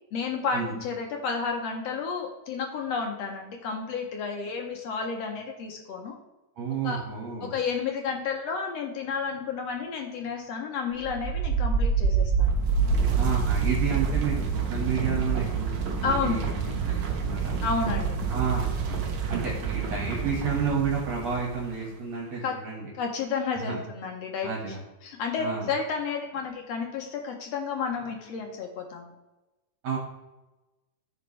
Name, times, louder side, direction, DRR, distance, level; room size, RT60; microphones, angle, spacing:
voice 1, 0.1-6.2 6.8-7.0 7.5-12.6 16.0-16.4 17.6-18.2 22.4-22.5 22.9-24.8 25.0-29.1, left 5 dB, 65° left, 2 dB, 1.8 m, -31 dB
voice 2, 6.6-7.5 13.2-16.6 16.9-17.6 18.3-19.0 19.3-22.9 23.6-23.8 24.4-24.8 25.4-25.7 29.8-30.0, right 6 dB, 60° right, -4 dB, 2.9 m, -31 dB
sound 1, 10.9-21.8, right 5 dB, 80° right, 1.0 m, -27 dB
14.0 x 5.2 x 3.3 m, 1.0 s
omnidirectional pair, 3.6 m